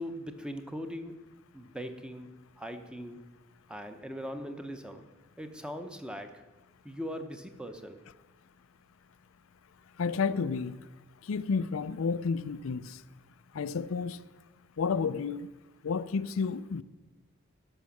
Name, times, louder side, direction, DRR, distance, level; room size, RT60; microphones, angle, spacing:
voice 1, 0.0-3.3 3.7-5.0 5.4-6.5 6.8-8.0, equal, 5° right, 0.8 m, -40 dB
voice 2, 10.0-10.8 11.2-13.0 13.5-14.2 14.8-15.5 15.8-16.8, left 5 dB, 85° left, 0.5 m, -31 dB
11.0 x 6.4 x 7.1 m
head